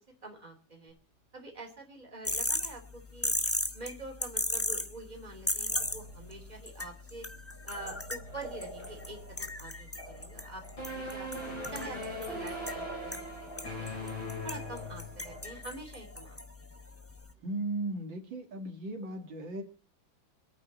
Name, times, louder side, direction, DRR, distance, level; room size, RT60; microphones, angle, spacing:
voice 1, 0.2-0.9 1.3-3.3 3.7-7.3 7.6-11.3 11.7-13.2 13.6-14.1 14.4-16.7, right 2 dB, 20° right, 2 dB, 3.3 m, -46 dB
sound 1, 2.2-17.3, left 1 dB, 15° left, 0.5 m, -38 dB
sound 2, 5.7-16.3, right 1 dB, 55° right, 2.6 m, -49 dB
sound 3, 10.8-15.4, left 1 dB, 75° left, 8.8 m, -40 dB
voice 2, 17.4-19.6, right 2 dB, 70° right, 3 dB, 2.8 m, -36 dB
25.5 x 9.2 x 4.2 m, 0.36 s
omnidirectional pair, 2.1 m